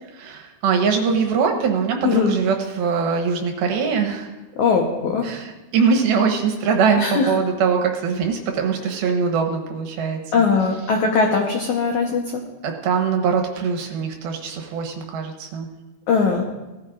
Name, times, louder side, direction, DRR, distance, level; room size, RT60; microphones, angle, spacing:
voice 1, 0.2-4.3 5.2-10.2 12.6-15.7, right 5 dB, 75° right, 3 dB, 2.7 m, -22 dB
voice 2, 2.0-2.4 4.6-5.2 7.0-7.3 10.3-12.4 16.1-16.5, left 5 dB, 80° left, 1 dB, 1.7 m, -20 dB
18.0 x 13.5 x 2.5 m, 1.1 s
omnidirectional pair, 4.8 m